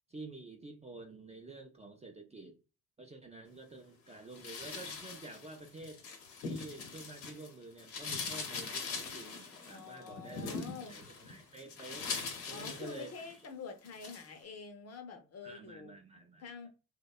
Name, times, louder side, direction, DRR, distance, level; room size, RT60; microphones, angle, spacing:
voice 1, 0.1-2.6 3.0-6.0 6.5-10.6 10.9-12.1 12.5-13.2 15.4-16.7, right 2 dB, 15° right, 0.4 m, -49 dB
sound 1, 4.3-7.5 7.8-13.5 13.8-14.3, left 5 dB, 90° left, 0.8 m, -42 dB
voice 2, 9.7-10.9 12.5-15.9 16.4-16.7, left 5 dB, 40° left, 0.5 m, -47 dB
2.7 x 2.2 x 2.3 m
supercardioid pair, 70°, 39 cm